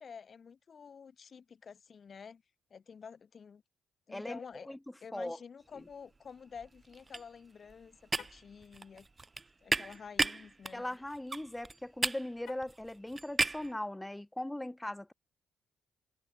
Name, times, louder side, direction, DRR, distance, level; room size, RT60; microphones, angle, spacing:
voice 1, 0.0-2.4 2.7-3.6 4.1-4.7 5.0-9.1 9.6-10.8, left 6 dB, 45° left, 1.2 m, -50 dB
voice 2, 4.1-4.4 4.7-4.8 5.1-5.4 10.7-15.1, left 1 dB, 10° left, 1.3 m, -39 dB
sound 1, 5.9-6.3 6.5-13.7, right 3 dB, 25° right, 0.5 m, -36 dB
Car, 8.1-8.5 12.4-12.9, left 10 dB, 70° left, 1.1 m, -54 dB
cardioid pair, 90°, 0 cm